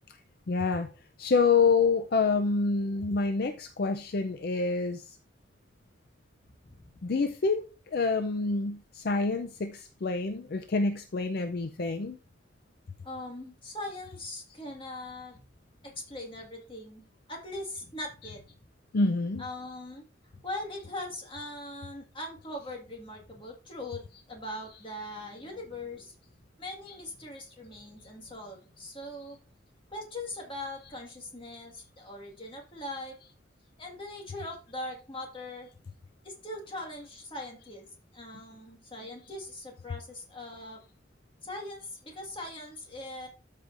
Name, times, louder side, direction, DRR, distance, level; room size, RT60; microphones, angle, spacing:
voice 1, 0.5-0.9 1.2-5.2 7.0-12.2 18.9-19.4, left 4 dB, 50° left, 0.5 m, -27 dB
voice 2, 6.6-7.0 13.0-15.4 15.8-17.0 17.3-18.4 19.4-20.0 20.3-26.1 26.6-29.4 29.9-33.2 33.8-35.7 36.2-37.9 38.1-40.8 41.4-43.3, left 1 dB, 25° left, 1.8 m, -41 dB
13.0 x 4.9 x 2.5 m
head